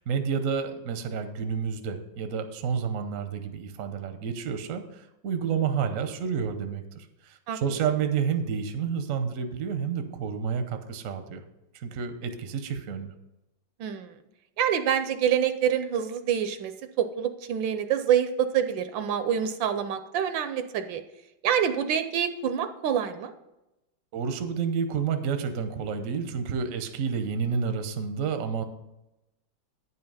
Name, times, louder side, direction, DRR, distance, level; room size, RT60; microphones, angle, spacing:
voice 1, 0.0-11.4 11.7-13.1 24.1-28.6, right 6 dB, 55° right, 8 dB, 0.9 m, -30 dB
voice 2, 13.8-14.1 14.6-16.7 17.0-21.0 21.4-23.3, right 9 dB, 75° right, 9 dB, 1.3 m, -26 dB
9.5 x 5.6 x 5.4 m, 0.94 s
omnidirectional pair, 2.2 m